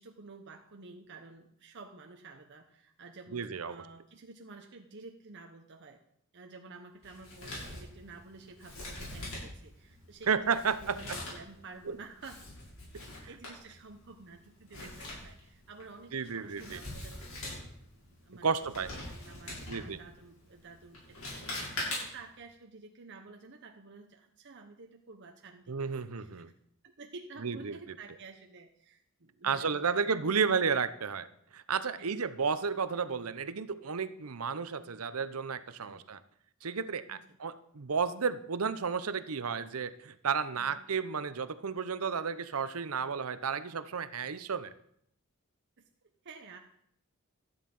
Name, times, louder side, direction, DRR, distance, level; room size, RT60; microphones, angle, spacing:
voice 1, 0.0-6.0 6.3-12.4 13.3-17.5 18.2-25.8 26.0-26.5 26.8-30.5 32.0-32.1 35.9-36.1 37.1-37.2 40.5-40.8 45.8-46.6, right 3 dB, 55° right, 3 dB, 1.0 m, -51 dB
voice 2, 3.3-3.8 10.3-11.0 11.9-12.0 16.1-16.8 18.4-18.9 19.6-20.0 25.7-26.5 27.4-27.8 29.4-31.3 31.5-36.2 36.6-44.7, right 5 dB, 85° right, 13 dB, 0.8 m, -32 dB
Male speech man speaking, 7.0-22.3, left 1 dB, 70° left, 6.9 m, -43 dB
12.5 x 10.0 x 5.4 m, 0.71 s
head